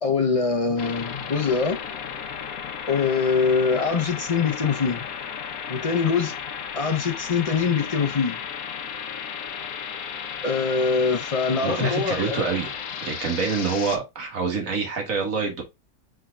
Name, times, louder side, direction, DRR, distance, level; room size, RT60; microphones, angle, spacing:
voice 1, 0.0-1.8 2.9-5.0 5.7-6.3 6.8-8.4 10.4-12.6, left 5 dB, 40° left, 0.5 m, -23 dB
sound 1, 0.8-14.0, left 7 dB, 70° left, 1.2 m, -34 dB
voice 2, 11.6-12.7 13.0-15.6, right 5 dB, 65° right, 1.8 m, -26 dB
4.7 x 4.3 x 2.3 m
omnidirectional pair, 1.6 m